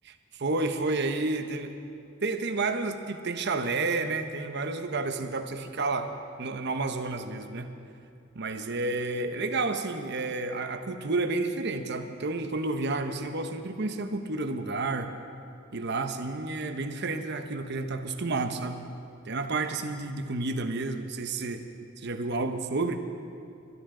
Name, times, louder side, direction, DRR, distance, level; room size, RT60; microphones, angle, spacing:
voice 1, 0.3-1.7 2.2-6.1 6.4-7.7 8.3-15.1 15.7-18.9 19.3-21.6 22.0-23.0, right 3 dB, 55° right, 7 dB, 0.9 m, -30 dB
22.0 x 12.5 x 3.8 m, 2.5 s
head